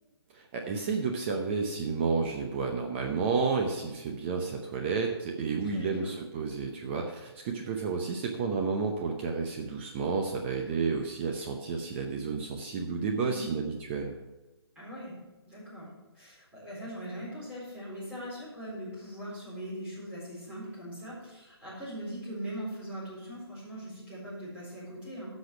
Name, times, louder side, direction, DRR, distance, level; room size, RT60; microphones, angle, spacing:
voice 1, 0.3-14.1, right 4 dB, 25° right, 2 dB, 0.8 m, -31 dB
voice 2, 5.6-6.1 13.2-13.5 14.8-15.1 15.5-15.9 16.1-25.3, equal, 10° right, -8 dB, 4.1 m, -41 dB
10.0 x 6.4 x 6.0 m, 1.1 s
hypercardioid pair, 155°, 14 cm